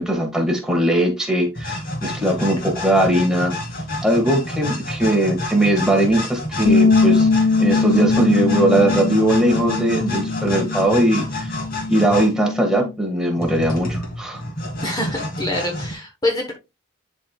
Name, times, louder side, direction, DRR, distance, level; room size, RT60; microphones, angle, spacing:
voice 1, 0.0-3.5 4.0-7.3 7.6-11.6 11.9-14.4, right 1 dB, 5° right, 1.6 m, -20 dB
sound 1, 1.5-12.3 13.4-15.9, left 1 dB, 45° left, 2.3 m, -29 dB
sound 2, 6.6-12.9, left 4 dB, 65° left, 1.6 m, -21 dB
voice 2, 14.8-16.5, left 1 dB, 20° left, 1.0 m, -25 dB
11.5 x 4.4 x 2.3 m
head